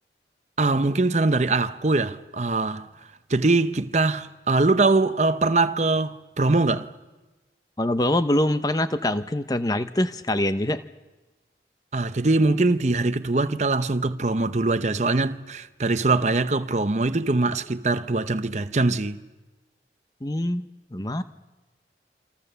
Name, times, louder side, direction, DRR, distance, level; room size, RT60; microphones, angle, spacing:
voice 1, 0.6-2.9 3.3-6.9 11.9-19.2, right 3 dB, 40° right, 0.8 m, -22 dB
voice 2, 7.8-10.8 20.2-20.7 20.9-21.2, left 1 dB, 20° left, 0.8 m, -24 dB
28.0 x 26.0 x 6.9 m
head